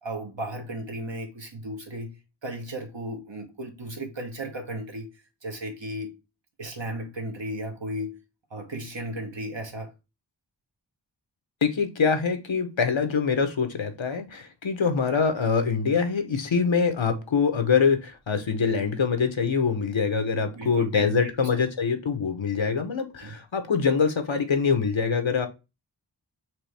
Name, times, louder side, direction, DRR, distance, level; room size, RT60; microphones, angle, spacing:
voice 1, 0.0-2.1 2.4-5.1 5.4-6.2 6.6-8.2 8.5-9.9 20.6-21.3 23.2-23.4, right 1 dB, 70° right, 1.3 m, -35 dB
voice 2, 11.6-25.5, left 5 dB, 85° left, 0.9 m, -24 dB
4.5 x 3.1 x 3.3 m
wide cardioid pair, 45°, 45 cm